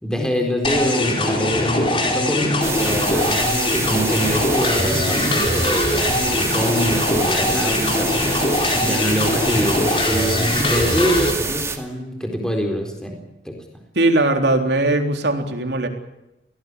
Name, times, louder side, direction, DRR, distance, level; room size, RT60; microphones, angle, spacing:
voice 1, 0.0-8.3 8.5-13.2 13.4-13.5, equal, 5° left, 2 dB, 4.1 m, -25 dB
sound 1, 0.6-11.3, left 1 dB, 30° left, 4.6 m, -21 dB
sound 2, 2.6-11.8, right 4 dB, 15° right, 2.6 m, -27 dB
voice 2, 14.0-15.9, right 2 dB, 70° right, 4 dB, 3.8 m, -19 dB
24.5 x 18.0 x 9.8 m, 0.93 s
head